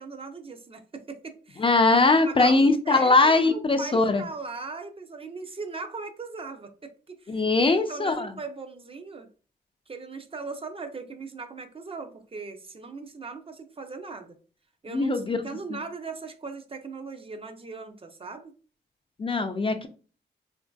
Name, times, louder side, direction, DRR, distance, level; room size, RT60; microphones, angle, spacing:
voice 1, 0.0-1.7 2.1-9.3 9.9-14.4 14.8-18.5, right 4 dB, 30° right, 7 dB, 0.5 m, -39 dB
voice 2, 1.6-4.2 7.3-8.3 14.9-15.4 15.7-15.8 19.2-19.9, left 3 dB, 30° left, 7 dB, 0.4 m, -21 dB
3.0 x 2.6 x 2.2 m, 0.38 s
cardioid pair, 70°, 19 cm